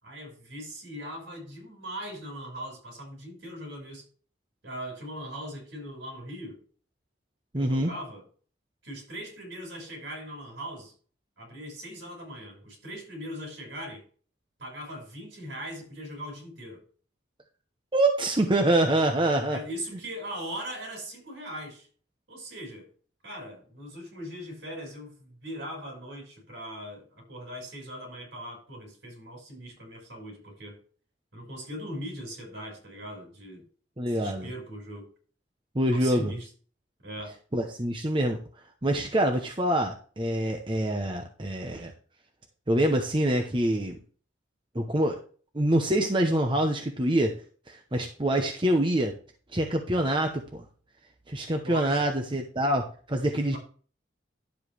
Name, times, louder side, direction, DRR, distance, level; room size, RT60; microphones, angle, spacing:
voice 1, 0.0-4.1 4.6-6.6 7.6-8.3 8.8-10.9 11.4-14.0 14.6-16.8 19.5-21.9 22.3-22.9 23.2-30.8 31.3-33.6 34.1-35.1 35.8-36.5 37.0-37.4 51.6-52.1, equal, 65° right, 5.4 m, -40 dB
voice 2, 7.5-7.9 17.9-19.6 34.0-34.5 35.7-36.3 37.5-38.4 38.8-41.9 42.7-44.0 44.7-45.2 45.5-47.3 47.7-49.1 49.5-50.6 51.3-53.6, right 1 dB, 25° right, 0.9 m, -25 dB
11.5 x 7.6 x 3.4 m
head